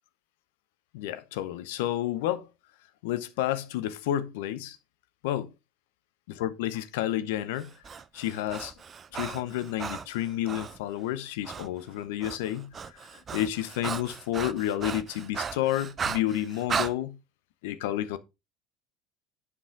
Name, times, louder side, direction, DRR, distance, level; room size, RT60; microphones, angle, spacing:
voice 1, 0.9-2.5 3.0-4.8 5.2-5.5 6.3-7.7 8.1-8.7 9.1-12.7 13.3-17.2 17.6-18.2, left 13 dB, 75° left, 0.7 m, -30 dB
Breathing, 7.6-10.8 11.4-11.7 12.0-16.9, right 6 dB, 35° right, 0.6 m, -36 dB
7.5 x 5.5 x 3.7 m
hypercardioid pair, 75°, 0 cm